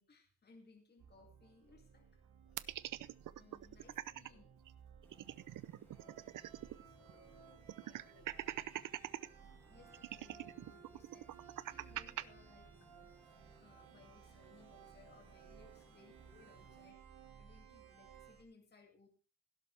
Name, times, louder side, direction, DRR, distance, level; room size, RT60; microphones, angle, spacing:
voice 1, 0.0-2.1 3.3-4.5 9.7-11.3 11.7-12.7 13.6-17.1 17.4-19.1, left 4 dB, 30° left, 2 dB, 2.4 m, -64 dB
sound 1, 1.0-18.4, right 7 dB, 85° right, 3.0 m, -60 dB
sound 2, 2.6-4.3 4.7-4.8 5.0-6.8 7.1-7.2 7.7-9.3 9.9-12.2, right 13 dB, 60° right, 0.6 m, -43 dB
sound 3, 5.0-16.9, equal, 5° left, 2.4 m, -68 dB
voice 2, 6.0-9.2 9.6-9.8 11.4-11.9, left 2 dB, 75° left, 0 dB, 4.4 m, -70 dB
16.0 x 12.0 x 3.4 m, 0.35 s
cardioid pair, 150°, 35 cm